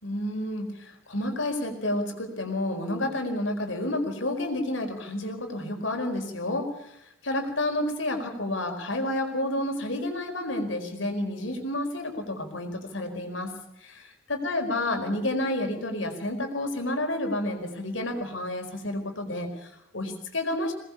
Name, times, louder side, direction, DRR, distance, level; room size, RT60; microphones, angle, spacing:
voice 1, 0.0-7.0 7.2-13.5 13.8-13.9 14.3-20.7, left 1 dB, 80° left, 5 dB, 4.7 m, -30 dB
23.0 x 19.5 x 7.1 m, 0.82 s
head